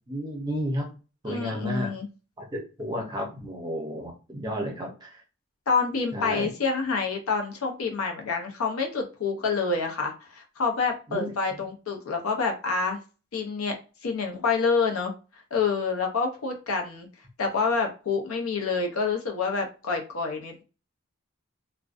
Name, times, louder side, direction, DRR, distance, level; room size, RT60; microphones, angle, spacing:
voice 1, 0.1-0.9 1.2-1.9 2.4-5.2 6.1-6.5 11.1-11.6, equal, 20° right, 1 dB, 0.5 m, -32 dB
voice 2, 1.3-2.1 5.7-13.0 13.3-13.8 14.0-15.1 15.5-17.1 17.4-20.6, left 4 dB, 80° left, 3 dB, 0.6 m, -27 dB
2.5 x 2.1 x 2.4 m, 0.33 s
head